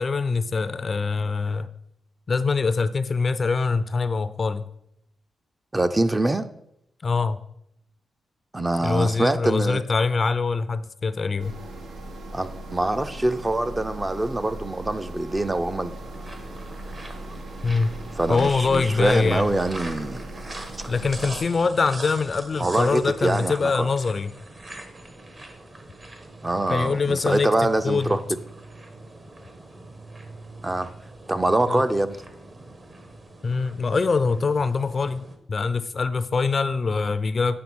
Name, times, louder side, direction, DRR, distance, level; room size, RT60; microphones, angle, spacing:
voice 1, 0.0-1.7 2.3-4.7 7.0-7.4 8.8-11.5 17.6-17.9 18.3-19.5 20.9-24.3 26.7-27.5 27.8-28.2 31.7-31.8 33.4-37.6, left 4 dB, 50° left, 14 dB, 0.4 m, -24 dB
voice 2, 5.7-6.5 8.5-9.8 12.3-15.9 18.2-20.2 22.6-23.9 26.4-28.2 30.6-30.9 31.3-32.2, right 2 dB, 20° right, 10 dB, 0.5 m, -24 dB
sound 1, 11.4-21.4, right 1 dB, 85° right, 0.9 m, -38 dB
sound 2, 15.9-35.4, right 2 dB, 40° right, 1.2 m, -42 dB
8.7 x 3.3 x 6.1 m, 0.78 s
cardioid pair, 60°, 0 cm